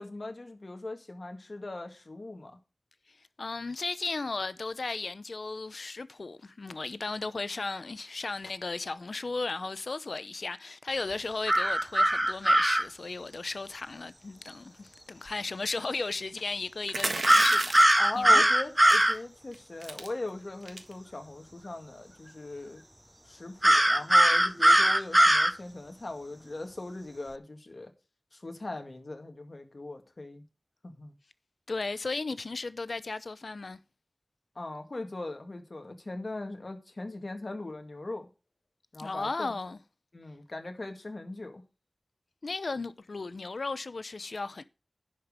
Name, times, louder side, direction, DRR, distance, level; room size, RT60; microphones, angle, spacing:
voice 1, 0.0-2.6 17.9-22.8 23.3-27.9 28.3-30.4 30.8-31.1 34.6-38.3 38.9-39.6 40.1-41.6, left 2 dB, 55° left, 2.0 m, -39 dB
voice 2, 3.1-18.4 31.7-33.8 39.0-39.8 42.4-44.6, left 3 dB, 85° left, 0.7 m, -35 dB
sound 1, 11.5-12.8 17.3-19.2 23.6-25.5, right 1 dB, 15° right, 0.6 m, -21 dB
sound 2, 16.9-18.1 18.8-19.1 19.5-19.6 19.8-20.1 20.6-20.9, right 3 dB, 85° right, 1.6 m, -33 dB
11.0 x 5.3 x 6.6 m
wide cardioid pair, 65°, 0 cm